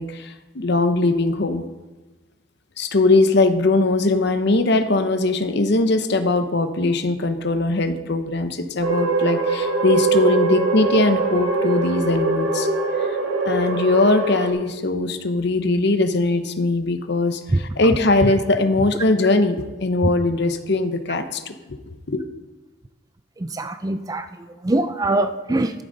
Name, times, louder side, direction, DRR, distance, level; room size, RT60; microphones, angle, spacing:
voice 1, 0.0-1.6 2.8-12.7 13.0-13.1 13.4-21.8 22.1-22.2, left 2 dB, 55° left, 8 dB, 0.8 m, -20 dB
sound 1, 8.8-14.5, right 3 dB, 65° right, 1.7 m, -22 dB
voice 2, 23.4-24.3 24.6-25.7, right 2 dB, 15° right, 9 dB, 0.4 m, -23 dB
12.5 x 9.9 x 3.9 m, 1.2 s
head